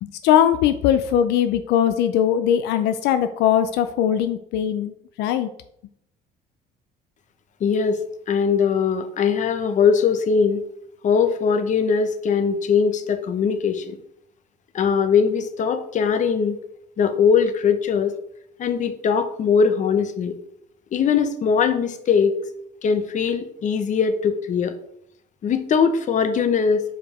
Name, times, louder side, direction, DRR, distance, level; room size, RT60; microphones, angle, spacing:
voice 1, 0.0-4.9 5.2-5.5, left 9 dB, 90° left, 10 dB, 0.5 m, -20 dB
voice 2, 7.6-10.6 11.0-14.0 14.7-16.6 17.0-18.1 18.6-20.4 20.9-22.4 22.8-24.7 25.4-26.8, left 6 dB, 45° left, 10 dB, 0.8 m, -21 dB
5.1 x 4.8 x 4.8 m, 0.75 s
cardioid pair, 110°, 17 cm